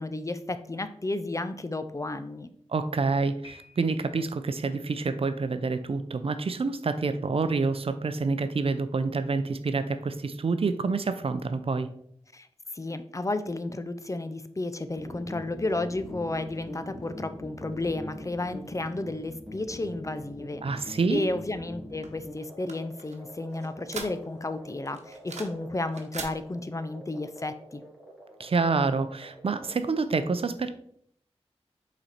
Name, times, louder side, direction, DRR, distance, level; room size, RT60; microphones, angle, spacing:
voice 1, 0.0-2.5 12.3-27.8, left 2 dB, 30° left, 10 dB, 0.5 m, -33 dB
voice 2, 2.7-11.9 20.6-21.3 28.4-30.7, right 4 dB, 55° right, 10 dB, 0.5 m, -27 dB
Piano, 3.4-4.4, left 2 dB, 50° left, 1.9 m, -53 dB
sound 1, 15.0-29.7, left 1 dB, 5° right, 2.2 m, -44 dB
sound 2, 22.0-24.5 24.9-25.6 25.9-26.3, right 4 dB, 90° right, 1.0 m, -41 dB
5.6 x 4.2 x 4.2 m, 0.65 s
cardioid pair, 55°, 11 cm